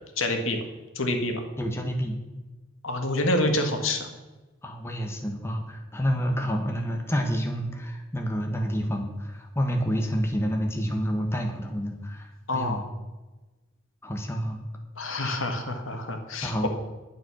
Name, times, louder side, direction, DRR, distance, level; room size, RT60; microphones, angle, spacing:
voice 1, 0.2-0.6 1.0-1.4 2.8-4.1 12.5-12.8 15.0-16.7, left 1 dB, 75° left, 5 dB, 1.8 m, -27 dB
voice 2, 1.6-2.2 4.6-12.8 14.0-14.6 15.2-15.4 16.4-16.7, equal, 10° left, 2 dB, 1.2 m, -29 dB
10.5 x 9.1 x 6.2 m, 1.2 s
head